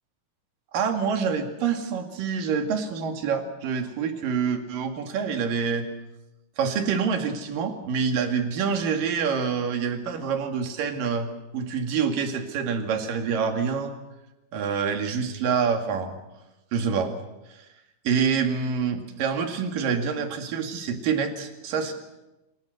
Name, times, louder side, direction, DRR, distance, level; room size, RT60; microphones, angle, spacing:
voice 1, 0.7-5.9 6.6-13.9 14.5-16.2 16.7-17.1 17.5-17.7 18.1-21.9, right 6 dB, 60° right, 5 dB, 3.7 m, -26 dB
27.0 x 23.5 x 6.6 m, 1.0 s
omnidirectional pair, 4.6 m